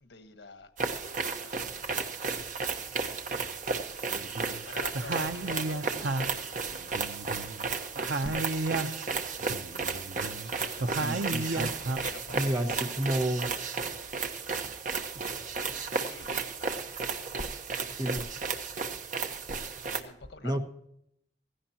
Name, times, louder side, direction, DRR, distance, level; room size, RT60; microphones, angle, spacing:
voice 1, 0.0-7.0 9.9-12.9 16.0-16.3 19.3-19.4 19.9-20.6, left 4 dB, 85° left, 8 dB, 1.4 m, -49 dB
sound 1, 0.8-20.0, right 4 dB, 50° right, 1.2 m, -34 dB
sound 2, 4.1-4.6 4.9-7.7 8.0-9.1 9.4-12.0, right 2 dB, 80° right, 0.8 m, -33 dB
voice 2, 10.9-11.7 12.3-13.5 18.0-18.2 20.4-20.6, right 1 dB, 20° right, 5 dB, 1.3 m, -31 dB
16.5 x 16.0 x 2.9 m, 0.73 s
head